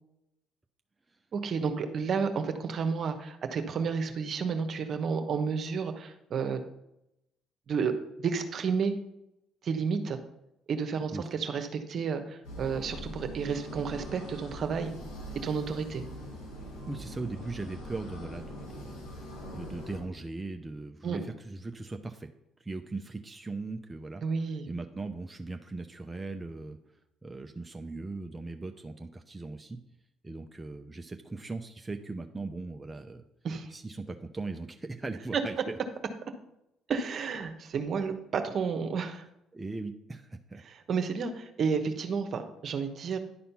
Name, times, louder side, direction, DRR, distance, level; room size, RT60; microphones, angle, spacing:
voice 1, 1.3-6.6 7.7-7.9 8.2-8.9 9.6-10.2 10.7-14.9 15.4-16.0 21.0-21.2 24.2-24.7 33.4-33.7 35.3-35.4 36.9-39.3 40.6-43.2, right 5 dB, 55° right, 7 dB, 1.1 m, -31 dB
sound 1, 12.4-20.0, equal, 85° left, 3.6 m, -42 dB
voice 2, 16.9-22.3 22.6-24.2 24.7-29.8 30.2-33.2 33.7-35.8 39.5-40.6, right 3 dB, 20° right, 4 dB, 0.7 m, -39 dB
10.5 x 4.3 x 5.5 m, 0.85 s
supercardioid pair, 70°, 0 cm